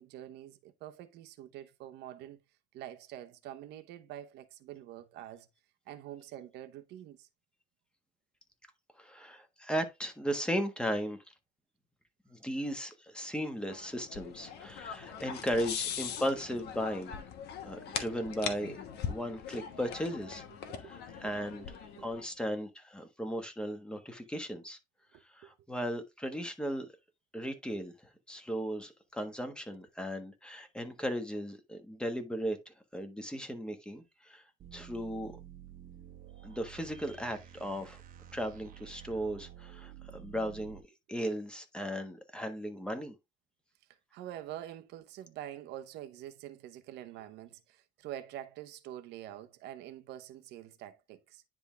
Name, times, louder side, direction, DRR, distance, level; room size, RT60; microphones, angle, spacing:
voice 1, 0.0-2.4 2.7-5.5 5.9-7.3 19.1-19.2 20.7-20.9 21.2-21.3 21.9-22.5 25.1-25.5 44.1-51.4, right 12 dB, 85° right, 0.9 m, -46 dB
voice 2, 9.0-11.2 12.3-17.1 17.6-18.7 19.1-20.4 20.9-21.7 22.0-24.8 25.3-26.9 27.3-27.9 28.3-34.4 34.7-35.3 36.4-38.0 38.3-40.8 41.1-43.1, equal, 5° left, 1.4 m, -36 dB
sound 1, 13.7-22.2, left 8 dB, 75° left, 1.2 m, -41 dB
sound 2, 34.6-40.8, right 11 dB, 55° right, 1.0 m, -51 dB
9.9 x 3.6 x 3.3 m
cardioid pair, 110°, 17 cm